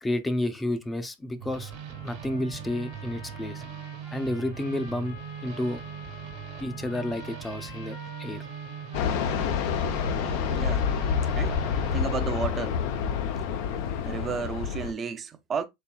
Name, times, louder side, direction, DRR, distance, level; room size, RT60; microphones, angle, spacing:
voice 1, 0.0-1.7 2.0-3.6 4.1-5.2 5.4-5.8 6.6-8.4, left 1 dB, 15° left, 0.6 m, -30 dB
sound 1, 1.4-12.0, right 10 dB, 65° right, 1.3 m, -40 dB
sound 2, 1.6-13.3, left 4 dB, 90° left, 2.0 m, -48 dB
Fixed-wing aircraft airplane, 8.9-14.9, left 7 dB, 65° left, 0.6 m, -28 dB
voice 2, 10.5-10.9 11.3-11.6 11.9-12.8 14.0-15.6, right 6 dB, 30° right, 0.6 m, -32 dB
4.4 x 3.1 x 2.3 m
hypercardioid pair, 100°, 0 cm